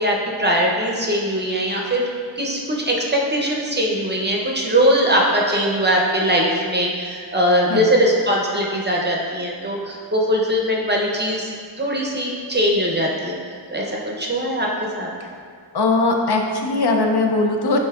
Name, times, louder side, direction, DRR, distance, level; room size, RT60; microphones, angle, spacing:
voice 1, 0.0-2.1 2.4-11.5 11.8-13.4 13.7-13.8 14.2-14.7 15.0-15.1, equal, 25° right, -2 dB, 0.6 m, -20 dB
voice 2, 15.7-17.8, left 3 dB, 55° left, 2 dB, 0.5 m, -20 dB
6.8 x 2.7 x 2.3 m, 2.1 s
wide cardioid pair, 45°, 47 cm